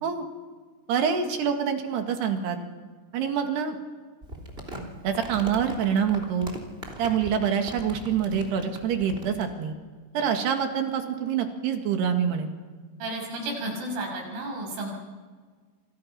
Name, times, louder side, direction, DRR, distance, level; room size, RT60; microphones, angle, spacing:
voice 1, 0.9-2.6 3.1-3.8 5.0-6.5 7.0-9.7 10.1-12.5, right 7 dB, 60° right, 5 dB, 3.7 m, -26 dB
Crumpling crinkling, 4.2-9.5, right 1 dB, 15° right, 2.6 m, -40 dB
voice 2, 13.0-14.9, right 1 dB, 80° right, 0 dB, 9.0 m, -32 dB
28.5 x 28.5 x 5.9 m, 1.5 s
omnidirectional pair, 5.9 m